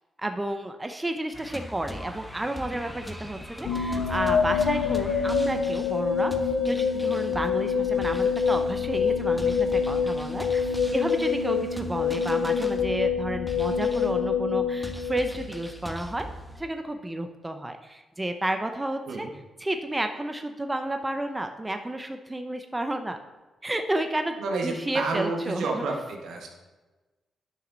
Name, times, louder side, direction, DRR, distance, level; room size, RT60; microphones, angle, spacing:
voice 1, 0.2-6.3 6.7-16.3 16.6-19.3 19.6-23.2 23.6-24.4 24.6-25.8, right 1 dB, 15° right, 6 dB, 0.8 m, -31 dB
sound 1, 1.3-16.6, equal, 5° left, 1.2 m, -41 dB
sound 2, 3.6-15.7, left 6 dB, 80° left, 0.6 m, -26 dB
voice 2, 24.4-26.5, right 3 dB, 80° right, 1 dB, 1.5 m, -30 dB
10.5 x 5.9 x 4.1 m, 1.2 s
supercardioid pair, 60°, 0 cm